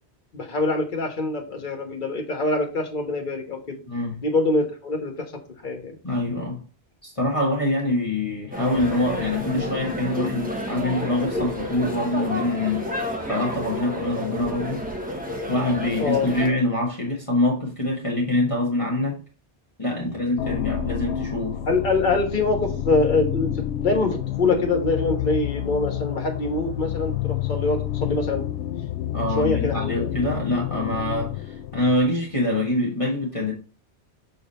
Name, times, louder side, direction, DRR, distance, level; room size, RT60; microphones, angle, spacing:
voice 1, 0.3-3.8 4.2-5.3 5.6-5.9 16.0-16.3 20.1-20.2 21.7-28.4 29.4-30.2, left 3 dB, 45° left, 1.4 m, -24 dB
voice 2, 3.9-4.2 6.0-6.6 7.0-12.8 13.3-14.8 15.5-19.2 19.8-21.6 29.1-33.5, left 2 dB, 30° left, 1.8 m, -25 dB
sound 1, 8.5-16.5, equal, 10° right, 1.1 m, -30 dB
sound 2, 20.4-32.3, left 11 dB, 90° left, 0.9 m, -29 dB
7.0 x 3.7 x 4.2 m
omnidirectional pair, 1.1 m